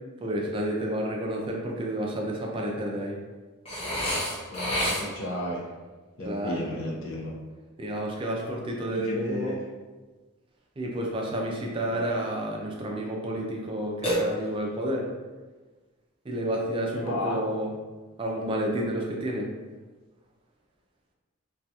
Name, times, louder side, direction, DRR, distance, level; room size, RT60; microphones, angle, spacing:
voice 1, 0.2-3.2 6.2-6.7 7.8-9.6 10.8-15.0 16.3-17.7 18.2-19.5, right 1 dB, 25° right, -1 dB, 0.3 m, -30 dB
Burping eructation, 3.7-5.4 14.0-14.8, equal, 30° left, 0.7 m, -29 dB
voice 2, 4.5-5.6 6.2-7.3 8.9-9.6 11.8-12.1 16.9-17.4, left 1 dB, 70° left, -3 dB, 0.6 m, -33 dB
2.3 x 2.3 x 2.7 m, 1.3 s
head